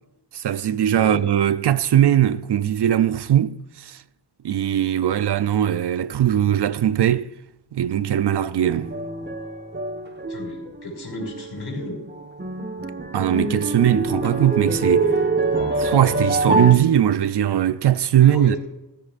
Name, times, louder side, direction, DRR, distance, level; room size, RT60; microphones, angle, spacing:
voice 1, 0.3-4.0 4.4-7.3 7.7-8.9 13.1-15.1 15.8-18.6, right 11 dB, 75° right, 0.6 m, -20 dB
voice 2, 0.9-1.2 10.3-12.0 18.2-18.6, equal, 70° left, 5.4 m, -33 dB
sound 1, 8.6-10.9 11.2-11.8 12.1-16.7, right 2 dB, 25° right, 1.3 m, -25 dB
17.0 x 15.0 x 2.5 m
wide cardioid pair, 95°, 41 cm